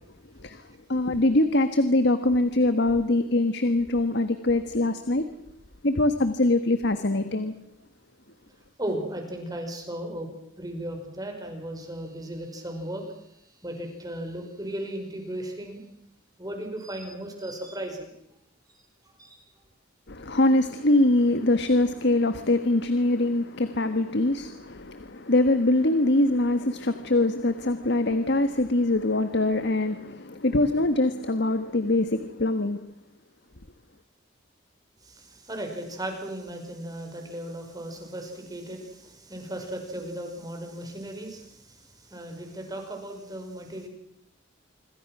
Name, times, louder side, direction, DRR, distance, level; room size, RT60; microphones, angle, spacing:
voice 1, 0.9-5.3 5.8-7.5 20.1-32.8, left 2 dB, 60° left, 1.5 m, -23 dB
voice 2, 7.1-7.5 8.8-10.3 10.6-13.0 13.6-15.8 16.4-18.1 19.1-19.4 35.0-43.9, right 1 dB, 20° right, 5.5 m, -36 dB
26.5 x 24.0 x 6.2 m
head